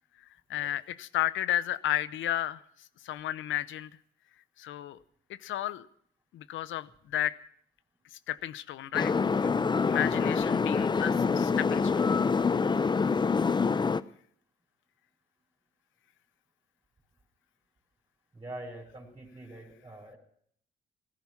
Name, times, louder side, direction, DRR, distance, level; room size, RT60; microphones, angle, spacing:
voice 1, 0.5-2.6 3.0-3.9 4.6-5.0 5.3-5.9 6.3-7.4 8.3-9.5 9.9-12.2, left 12 dB, 80° left, 16 dB, 0.8 m, -33 dB
sound 1, 8.9-14.0, left 5 dB, 20° left, 0.5 m, -26 dB
voice 2, 18.3-20.2, right 1 dB, 25° right, -2 dB, 4.6 m, -44 dB
16.0 x 13.5 x 6.0 m, 0.63 s
cardioid pair, 90°, 20 cm